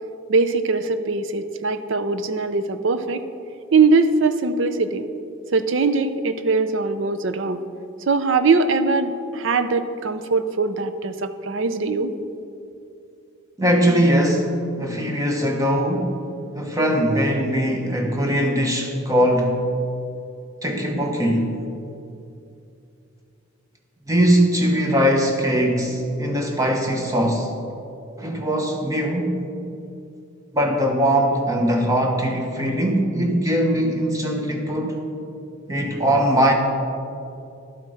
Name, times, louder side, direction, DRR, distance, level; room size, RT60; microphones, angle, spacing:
voice 1, 0.3-3.2 3.7-5.1 5.5-7.6 8.1-12.1, right 4 dB, 60° right, 11 dB, 0.5 m, -21 dB
voice 2, 13.6-16.2 16.6-19.6 20.6-21.6 24.1-27.5 28.2-29.5 30.5-35.0 35.7-36.5, equal, 15° right, 2 dB, 1.0 m, -21 dB
11.5 x 8.3 x 4.9 m, 2.7 s
head